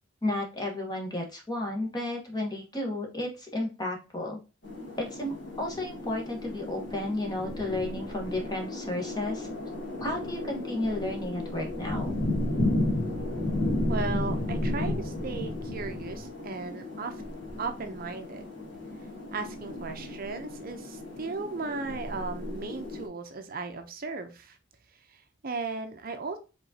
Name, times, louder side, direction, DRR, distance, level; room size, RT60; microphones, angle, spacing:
voice 1, 0.2-4.4 5.0-9.5 10.0-12.1, left 1 dB, 20° left, 1 dB, 1.3 m, -33 dB
sound 1, 4.6-23.1, left 1 dB, 60° left, 1.8 m, -33 dB
voice 2, 13.9-17.1 17.6-18.5 19.3-24.6 25.1-26.4, right 4 dB, 45° right, 7 dB, 0.6 m, -36 dB
5.0 x 3.7 x 2.7 m, 0.32 s
head